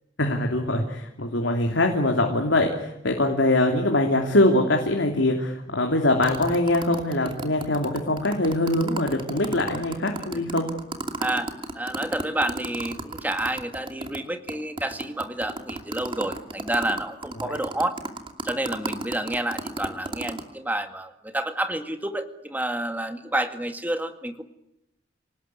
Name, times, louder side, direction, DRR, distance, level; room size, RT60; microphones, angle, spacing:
voice 1, 0.2-10.7 17.4-17.6, left 1 dB, 80° left, 2 dB, 3.1 m, -23 dB
sound 1, 6.2-14.2 14.5-14.6 14.8-20.4, right 2 dB, 30° right, 2.7 m, -33 dB
voice 2, 11.2-11.5 11.8-18.0 18.4-24.4, right 1 dB, 10° right, 7 dB, 2.1 m, -29 dB
28.0 x 18.5 x 9.7 m, 0.86 s
head